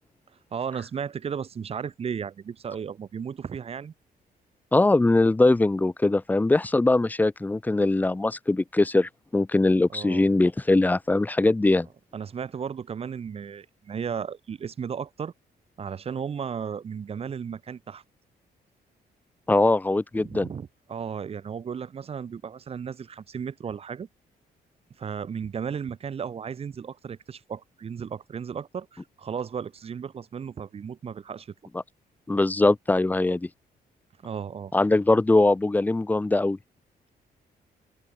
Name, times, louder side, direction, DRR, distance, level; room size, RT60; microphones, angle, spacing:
voice 1, 0.5-3.9 9.9-10.3 12.1-15.3 15.8-18.0 20.1-24.1 25.0-31.5 34.2-34.7, right 7 dB, 35° right, 6.1 m, -34 dB
voice 2, 4.7-11.9 19.5-20.5 32.3-33.5 34.7-36.6, left 2 dB, 10° left, 1.1 m, -21 dB
open air
cardioid pair, 180°, 17 cm